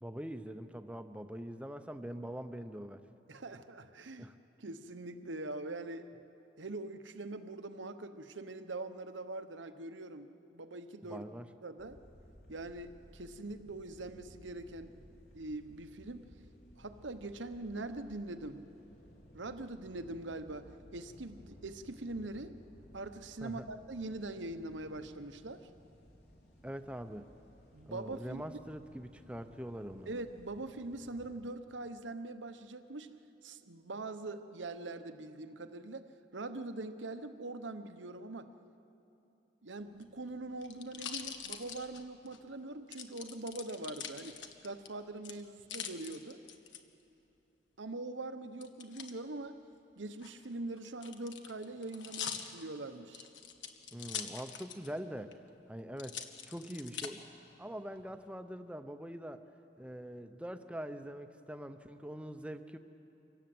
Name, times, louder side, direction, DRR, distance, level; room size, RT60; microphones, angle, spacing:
voice 1, 0.0-3.0 4.2-4.4 11.0-11.5 23.4-23.7 26.6-27.3 27.9-30.1 53.9-55.4 55.7-57.2 57.6-59.4 59.8-62.8, equal, 5° right, 9 dB, 0.7 m, -43 dB
voice 2, 3.3-4.3 4.6-6.1 6.6-11.2 11.6-12.0 12.5-14.9 15.3-16.3 16.8-18.7 19.3-22.5 22.9-25.7 27.7-28.4 30.1-33.1 33.4-36.1 36.3-38.5 39.6-44.3 44.6-46.4 47.8-49.6 50.0-53.3, right 2 dB, 90° right, 9 dB, 1.0 m, -43 dB
sound 1, 11.8-31.4, equal, 60° left, 4.2 m, -59 dB
sound 2, 39.9-42.4 42.9-44.9 45.2-46.8 48.6-49.1 50.1-55.0 55.3-55.4 56.0-57.1 57.7-58.3, left 8 dB, 85° left, 1.4 m, -44 dB
25.5 x 17.5 x 7.8 m, 2.9 s
head